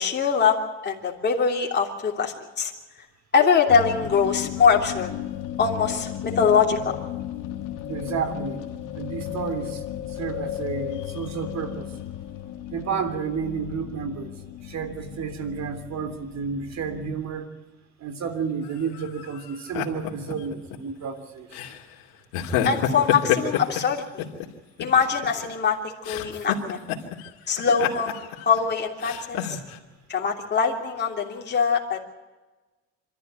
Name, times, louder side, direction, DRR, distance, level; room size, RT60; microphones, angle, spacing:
voice 1, 0.0-2.7 3.3-5.1 5.6-7.0 22.6-24.2 24.8-25.8 26.0-26.8 27.5-29.6 30.1-32.0, left 6 dB, 30° left, -1 dB, 3.0 m, -23 dB
sound 1, 3.7-17.2, left 12 dB, 65° left, 1.7 m, -35 dB
voice 2, 7.9-8.6 8.9-9.8 10.1-12.0 12.7-17.5 18.0-21.6, right 6 dB, 50° right, 9 dB, 3.3 m, -31 dB
sound 2, 18.6-20.8 21.5-21.8 22.3-24.5 24.8-25.7 26.0-27.3 27.6-28.6 29.0-29.8, left 11 dB, 80° left, 2.6 m, -28 dB
26.5 x 13.0 x 9.1 m, 1.2 s
supercardioid pair, 95°, 35 cm